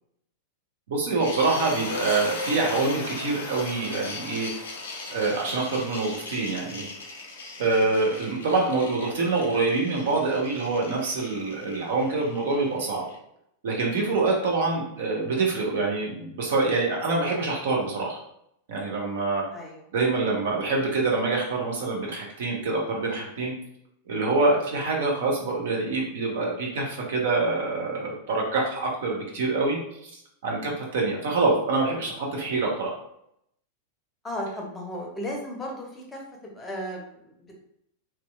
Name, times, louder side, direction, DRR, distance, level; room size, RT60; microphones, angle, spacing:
voice 1, 0.9-4.5 5.1-6.9 7.6-13.0 13.6-18.2 18.7-19.4 19.9-23.5 24.1-33.0, right 3 dB, 60° right, -2 dB, 0.8 m, -26 dB
sound 1, 1.2-13.2, left 3 dB, 65° left, 0.5 m, -37 dB
voice 2, 19.5-19.8 30.6-30.7 34.2-37.3, equal, 15° left, -1 dB, 0.7 m, -35 dB
2.9 x 2.3 x 2.2 m, 0.74 s
figure-of-eight pair, 90°, 0 cm